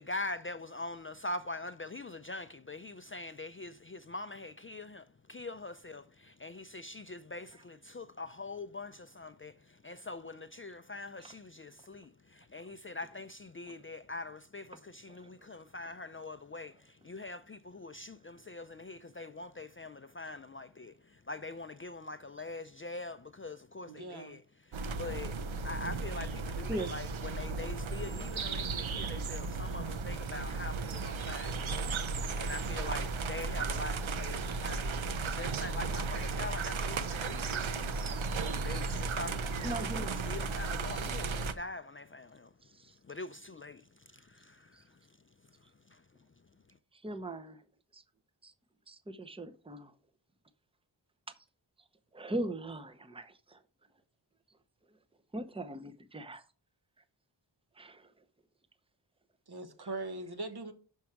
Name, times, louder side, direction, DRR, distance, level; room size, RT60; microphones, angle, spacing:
voice 1, 0.0-24.4 24.7-25.4 25.6-31.7 32.4-37.9 38.6-42.5 43.1-43.8 44.1-44.8 45.9-46.0, left 2 dB, 30° left, 0.4 m, -43 dB
voice 2, 23.9-24.4 32.6-33.1 59.5-60.7, right 2 dB, 55° right, 1.2 m, -42 dB
sound 1, 24.7-41.5, right 4 dB, 85° right, 0.7 m, -35 dB
voice 3, 39.6-40.2 42.6-43.0 44.8-44.9 46.9-47.6 47.9-48.0 48.4-48.5 48.9-49.9 52.1-53.6 55.3-56.4 57.8-57.9 59.8-59.9, right 1 dB, 10° right, 0.7 m, -40 dB
6.2 x 4.6 x 5.9 m
cardioid pair, 40°, 46 cm